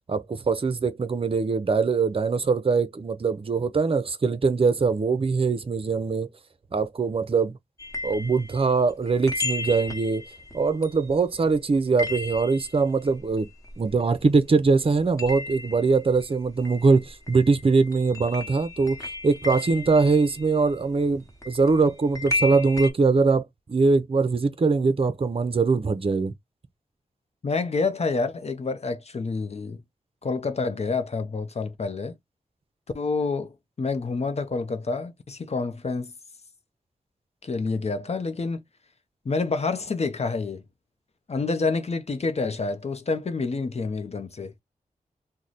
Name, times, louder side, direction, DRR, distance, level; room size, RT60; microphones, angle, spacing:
voice 1, 0.1-6.3 6.7-7.5 8.0-10.2 10.5-13.5 13.8-19.0 19.2-23.4 23.7-26.3, right 4 dB, 40° right, 0.6 m, -22 dB
sound 1, 7.8-14.4 14.7-22.9, left 3 dB, 20° left, 1.2 m, -35 dB
voice 2, 27.4-29.8 30.2-32.2 32.9-36.1 37.4-38.6 39.2-40.6 41.3-44.5, left 4 dB, 50° left, 0.6 m, -28 dB
3.1 x 2.2 x 3.9 m
cardioid pair, 60°, 14 cm